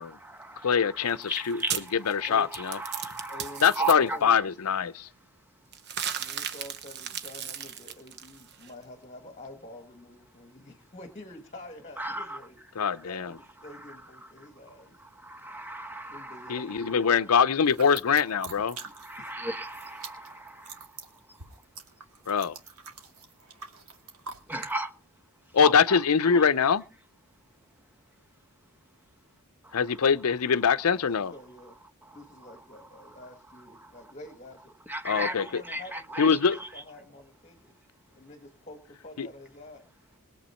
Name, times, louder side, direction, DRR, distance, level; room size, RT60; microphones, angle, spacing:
voice 1, 0.0-4.2 12.0-12.4 15.0-16.9 18.8-20.9 24.5-24.9 25.6-26.0 26.3-26.4 29.7-29.8 33.8-33.9 34.9-35.3 35.7-36.7, right 2 dB, 10° right, 1.1 m, -36 dB
voice 2, 0.6-2.8 3.6-5.1 12.8-13.3 16.5-18.8 22.3-22.5 25.5-26.8 29.7-31.3 35.0-35.4 36.2-36.6 39.2-39.3, left 6 dB, 85° left, 0.6 m, -23 dB
sound 1, 1.1-3.9 5.7-8.7, right 8 dB, 50° right, 1.0 m, -36 dB
voice 3, 3.3-4.4 6.2-12.6 13.0-15.0 16.1-16.8 18.8-18.9 19.2-19.3 31.1-31.8 32.1-34.7 35.1-37.7 38.1-39.9, left 1 dB, 30° left, 1.5 m, -47 dB
sound 2, 17.6-19.3 19.6-24.7, right 5 dB, 90° right, 2.2 m, -44 dB
21.5 x 7.8 x 4.3 m
head